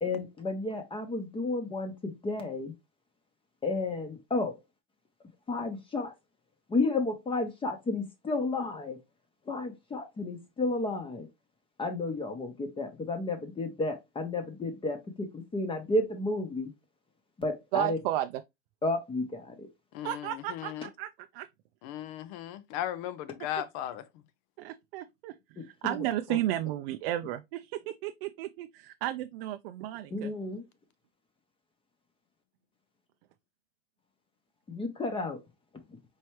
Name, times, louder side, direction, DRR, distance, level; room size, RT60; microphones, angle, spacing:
voice 1, 0.0-2.7 3.6-4.6 5.5-6.1 6.7-9.0 9.5-11.3 11.8-16.7 17.4-18.0 18.8-19.7 25.6-26.0 26.3-26.4 30.1-30.7 34.7-35.4 35.9-36.0, left 2 dB, 15° left, 0.8 m, -32 dB
voice 2, 17.7-18.3 20.0-21.5 24.6-25.3 25.8-30.3, right 13 dB, 60° right, 0.4 m, -33 dB
voice 3, 19.9-20.9 21.8-24.1, left 11 dB, 50° left, 0.6 m, -37 dB
4.5 x 3.0 x 3.1 m
hypercardioid pair, 115°, 33 cm